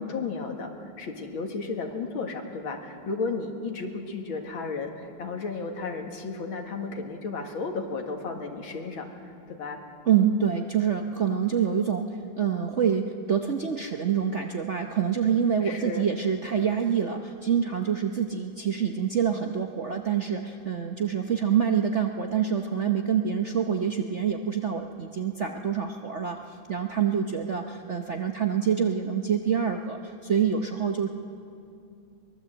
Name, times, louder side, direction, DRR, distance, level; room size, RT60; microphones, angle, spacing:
voice 1, 0.0-9.8 15.6-16.1, left 4 dB, 85° left, 2 dB, 2.6 m, -34 dB
voice 2, 10.1-12.1 12.4-26.4 26.7-31.1, right 8 dB, 50° right, 4 dB, 0.9 m, -26 dB
23.5 x 20.0 x 7.9 m, 2.5 s
omnidirectional pair, 2.2 m